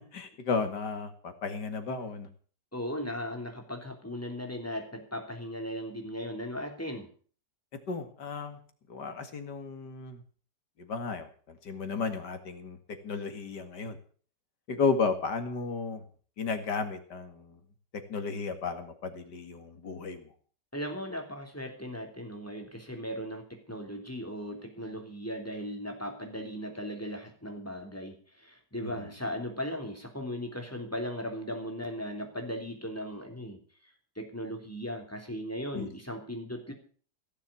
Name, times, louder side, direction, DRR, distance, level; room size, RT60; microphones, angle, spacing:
voice 1, 0.1-2.3 7.9-8.6 8.9-10.2 10.8-12.8 13.0-14.0 14.7-16.0 16.4-17.6 18.1-20.3 28.8-28.9 35.7-35.9, left 4 dB, 85° left, 7 dB, 2.6 m, -33 dB
voice 2, 2.7-7.1 20.7-33.6 34.1-36.7, equal, 10° left, 3 dB, 3.2 m, -37 dB
16.5 x 7.4 x 8.4 m, 0.43 s
omnidirectional pair, 1.8 m